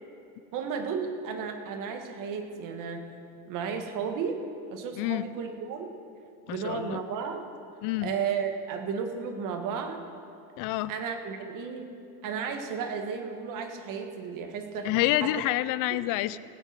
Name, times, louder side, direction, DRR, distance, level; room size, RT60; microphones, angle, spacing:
voice 1, 0.5-3.0 3.4-4.4 4.7-5.9 6.5-7.5 8.0-10.0 10.9-11.9 12.2-14.9 15.2-15.3 15.9-16.0, right 6 dB, 50° right, 5 dB, 1.7 m, -33 dB
voice 2, 5.0-5.3 6.5-7.0 7.8-8.1 10.6-10.9 14.8-16.4, left 16 dB, 55° left, 17 dB, 0.5 m, -28 dB
18.5 x 8.0 x 6.0 m, 2.5 s
cardioid pair, 145°, 40 cm